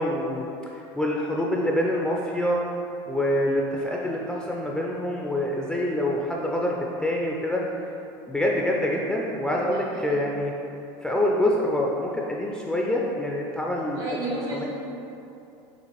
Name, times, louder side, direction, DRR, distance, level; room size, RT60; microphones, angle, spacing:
voice 1, 0.0-2.6 3.1-7.9 8.3-10.5 11.0-14.2 14.5-14.6, left 1 dB, 5° left, -2 dB, 0.3 m, -26 dB
voice 2, 9.6-10.3 13.9-14.7, right 1 dB, 80° right, -5 dB, 1.5 m, -34 dB
6.7 x 2.5 x 3.0 m, 2.8 s
supercardioid pair, 120°, 13 cm